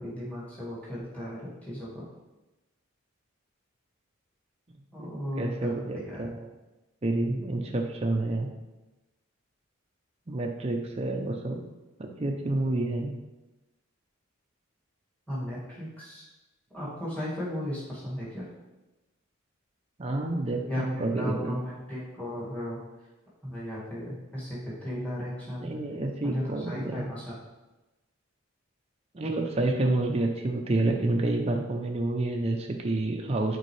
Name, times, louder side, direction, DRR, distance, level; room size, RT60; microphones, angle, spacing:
voice 1, 0.0-2.1 4.9-6.3 15.3-16.2 16.7-18.5 20.7-22.8 23.4-25.7 26.2-27.3, equal, 5° left, -9 dB, 2.1 m, -35 dB
voice 2, 5.4-6.4 7.0-8.5 10.3-11.6 12.0-13.1 20.0-21.6 25.6-27.1 29.1-33.6, right 2 dB, 30° right, 1 dB, 0.5 m, -29 dB
6.7 x 4.5 x 3.2 m, 1.1 s
head